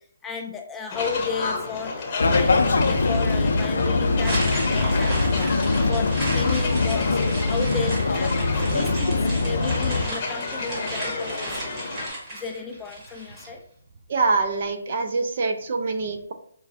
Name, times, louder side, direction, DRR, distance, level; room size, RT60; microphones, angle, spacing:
voice 1, 0.2-11.8 12.3-13.6, left 5 dB, 10° left, 2 dB, 0.4 m, -34 dB
sound 1, 0.9-12.1, left 3 dB, 35° left, 0.8 m, -32 dB
sound 2, 2.2-10.1, left 3 dB, 70° left, 0.5 m, -22 dB
sound 3, 4.2-13.5, right 1 dB, 25° right, 1.5 m, -34 dB
voice 2, 14.1-16.3, right 3 dB, 50° right, 6 dB, 0.5 m, -25 dB
5.2 x 2.3 x 2.5 m, 0.63 s
figure-of-eight pair, 145°, 0 cm